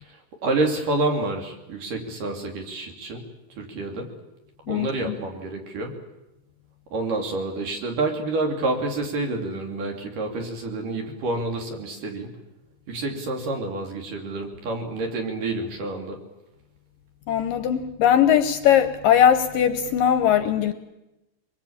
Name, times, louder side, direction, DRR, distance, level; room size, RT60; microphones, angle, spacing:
voice 1, 0.0-3.2 3.5-4.1 4.7-5.9 6.9-12.3 12.9-16.2, right 2 dB, 55° right, 4.3 m, -28 dB
voice 2, 4.7-5.1 17.3-20.7, left 9 dB, 70° left, 2.4 m, -20 dB
24.0 x 22.0 x 8.8 m
omnidirectional pair, 4.6 m